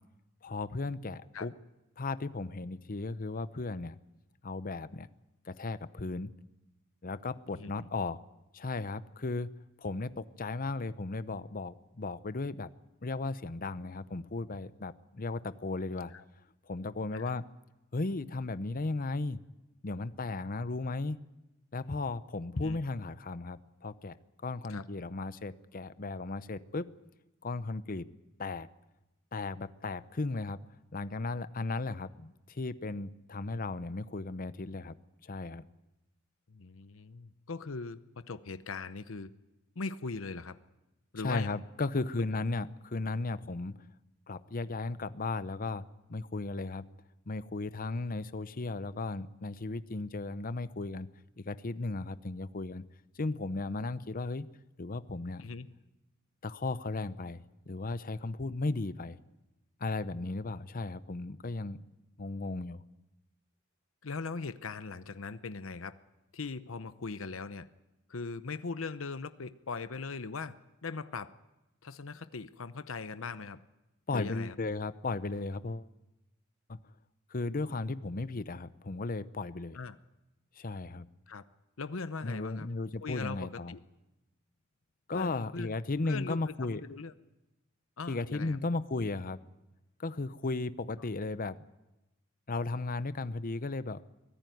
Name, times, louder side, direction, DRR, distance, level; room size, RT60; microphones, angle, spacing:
voice 1, 0.4-1.5 2.0-4.0 4.4-5.1 5.5-6.3 7.0-8.2 8.5-9.5 9.8-12.7 13.0-16.1 16.7-17.4 17.9-19.4 19.8-21.2 21.7-24.1 24.4-26.8 27.4-28.1 28.4-28.7 29.3-30.6 30.9-34.9 35.2-35.6 41.2-43.7 44.3-45.8 46.1-46.8 47.3-51.1 51.4-52.8 53.2-54.5 54.8-55.4 56.4-57.4 57.7-59.2 59.8-61.8 62.2-62.8 74.1-75.9 76.7-76.8 77.3-79.8 80.6-81.1 82.2-83.7 85.1-86.8 88.1-89.4 90.0-91.6 92.5-94.0, left 3 dB, 45° left, 14 dB, 0.8 m, -35 dB
voice 2, 7.5-7.9 16.1-16.2 17.1-17.3 22.6-22.8 24.7-24.8 36.5-38.0 38.3-39.3 39.8-40.6 41.1-41.6 55.4-55.7 64.0-65.9 66.3-67.7 68.1-70.6 70.8-71.3 71.8-73.6 74.1-74.5 79.7-80.0 81.3-81.4 81.8-82.7 83.0-83.8 85.1-85.7 86.1-87.1 88.0-88.6, left 4 dB, 85° left, 12 dB, 0.8 m, -40 dB
23.5 x 15.5 x 9.3 m, 0.99 s
head